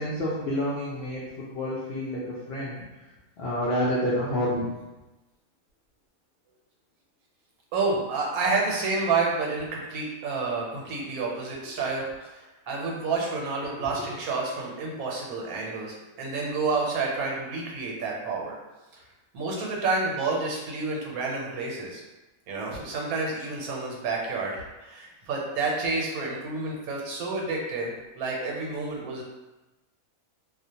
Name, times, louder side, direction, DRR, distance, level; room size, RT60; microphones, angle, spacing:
voice 1, 0.0-3.1 3.4-4.7, equal, 70° left, -8 dB, 0.6 m, -29 dB
voice 2, 7.7-18.6 18.9-19.0 19.3-22.0 22.5-29.2, right 3 dB, 85° right, -2 dB, 1.1 m, -29 dB
2.3 x 2.1 x 2.7 m, 1.1 s
omnidirectional pair, 1.5 m